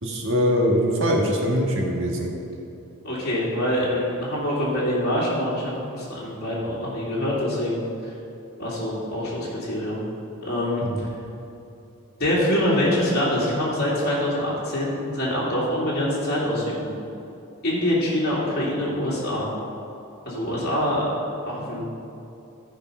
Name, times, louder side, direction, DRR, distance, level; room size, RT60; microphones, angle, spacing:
voice 1, 0.0-2.3 10.8-11.0, equal, 60° right, -1 dB, 1.8 m, -22 dB
voice 2, 3.0-7.9 8.6-10.0 10.4-11.1 12.2-16.9 17.6-19.5 20.2-21.0 21.5-21.8, left 1 dB, 50° left, -8 dB, 2.8 m, -25 dB
14.5 x 5.1 x 5.6 m, 2.8 s
head